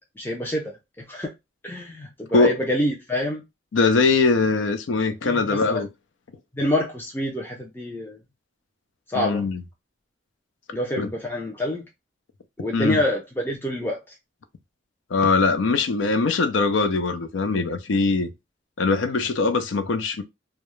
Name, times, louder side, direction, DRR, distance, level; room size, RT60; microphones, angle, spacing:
voice 1, 0.2-1.3 1.6-3.4 5.2-5.8 6.5-8.2 9.1-9.5 10.7-11.9 12.6-14.0, left 1 dB, 10° left, 0.4 m, -27 dB
voice 2, 3.7-5.9 9.1-9.6 11.0-11.1 12.7-13.0 15.1-18.3 18.8-20.2, left 4 dB, 80° left, 0.4 m, -21 dB
2.3 x 2.0 x 3.0 m
head